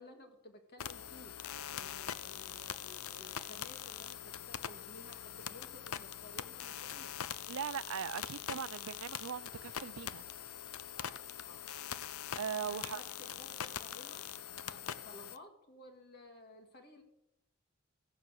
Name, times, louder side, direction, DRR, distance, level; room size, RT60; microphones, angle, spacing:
voice 1, 0.0-7.2 10.9-11.7 12.7-14.3 14.7-17.0, left 1 dB, 50° left, 1.9 m, -55 dB
sound 1, 0.8-15.4, left 9 dB, 75° left, 0.6 m, -43 dB
voice 2, 7.5-10.3 12.4-13.0, right 7 dB, 75° right, 0.5 m, -40 dB
15.0 x 8.2 x 6.4 m
head